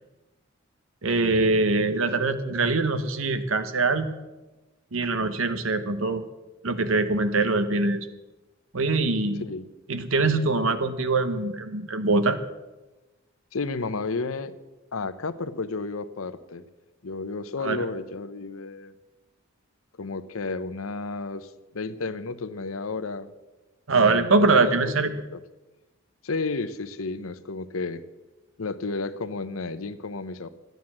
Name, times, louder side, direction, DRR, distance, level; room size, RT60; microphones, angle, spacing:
voice 1, 1.0-4.2 4.9-6.2 6.6-8.1 8.7-9.4 9.9-12.4 17.6-17.8 23.9-25.1, right 3 dB, 75° right, 10 dB, 1.1 m, -23 dB
voice 2, 13.5-14.6 14.9-16.6 17.0-18.9 20.0-23.3 23.9-25.4 26.2-28.0 28.6-30.5, left 3 dB, 85° left, 13 dB, 0.8 m, -32 dB
13.5 x 9.3 x 7.4 m, 1.1 s
head